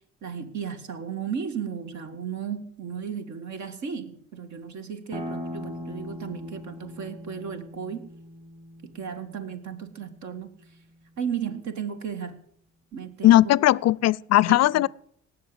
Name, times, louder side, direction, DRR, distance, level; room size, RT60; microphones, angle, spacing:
voice 1, 0.2-8.1 8.9-10.5 11.2-12.4 12.9-13.6 14.5-14.8, right 7 dB, 70° right, 1.9 m, -34 dB
sound 1, 5.1-10.5, left 1 dB, 20° right, 2.0 m, -40 dB
voice 2, 13.2-14.9, left 14 dB, 60° left, 0.4 m, -18 dB
18.0 x 6.7 x 7.8 m
cardioid pair, 90°, 30 cm